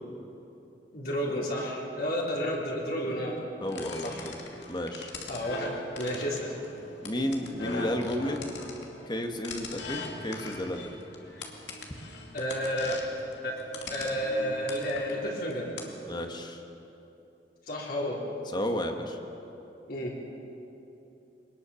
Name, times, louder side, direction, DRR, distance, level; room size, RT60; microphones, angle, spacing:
voice 1, 0.9-3.4 4.0-4.3 5.3-6.5 12.3-12.9 13.4-13.5 13.9-15.7 17.7-18.2 19.9-20.2, equal, 60° left, -3 dB, 3.8 m, -31 dB
voice 2, 3.6-4.4 4.7-5.1 7.0-8.4 9.0-10.9 16.0-16.6 18.5-19.2, left 1 dB, 25° left, 4 dB, 1.7 m, -32 dB
sound 1, 3.7-16.0, left 3 dB, 80° left, 2.6 m, -42 dB
23.0 x 20.0 x 7.2 m, 2.9 s
head